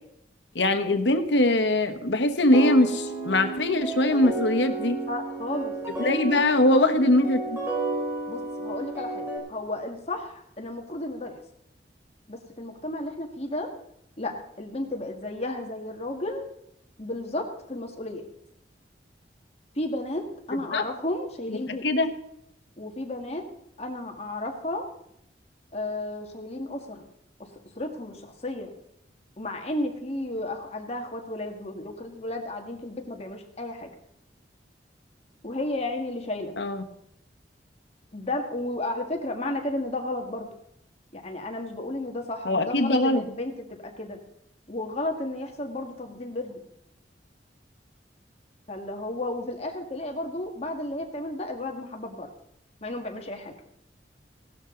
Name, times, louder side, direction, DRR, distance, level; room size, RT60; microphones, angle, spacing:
voice 1, 0.5-5.0 6.0-7.6 20.7-20.8 21.8-22.1 36.6-36.8 42.4-43.2, left 1 dB, 80° left, 7 dB, 1.3 m, -22 dB
sound 1, 2.5-9.4, right 2 dB, 15° right, 4.5 m, -32 dB
voice 2, 5.1-5.7 6.7-7.0 8.3-11.4 12.3-13.7 14.2-16.4 17.0-18.2 19.8-21.9 22.8-23.4 23.8-24.8 25.7-27.0 27.4-27.5 27.8-28.7 29.4-33.9 35.4-36.5 38.1-40.5 41.1-44.2 44.7-46.6 48.7-52.3 52.8-53.5, left 1 dB, 35° left, 3 dB, 2.0 m, -33 dB
17.0 x 12.5 x 3.9 m, 0.76 s
head